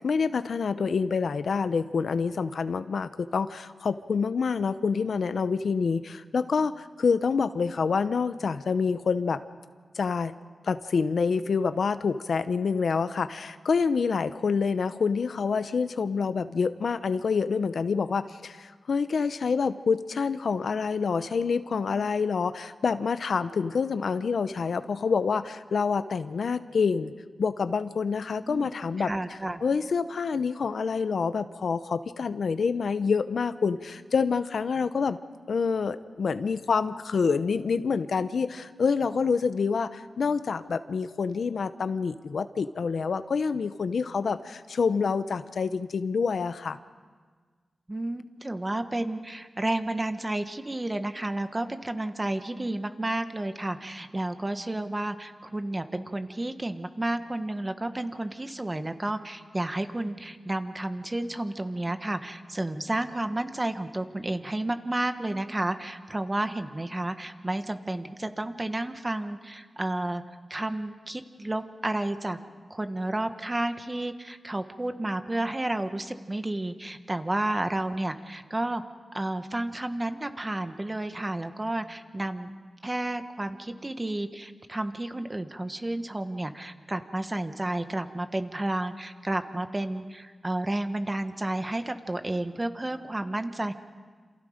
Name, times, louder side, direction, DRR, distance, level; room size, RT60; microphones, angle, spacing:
voice 1, 0.0-9.4 9.9-10.3 10.6-27.1 27.4-29.1 29.6-35.2 35.5-46.8, left 5 dB, 75° left, 12 dB, 0.8 m, -27 dB
voice 2, 28.5-29.6 47.9-70.2 70.5-72.4 72.7-78.8 79.1-82.5 82.8-93.7, right 1 dB, 20° right, 8 dB, 1.3 m, -31 dB
28.5 x 27.5 x 5.1 m, 1.5 s
wide cardioid pair, 95°, 0 cm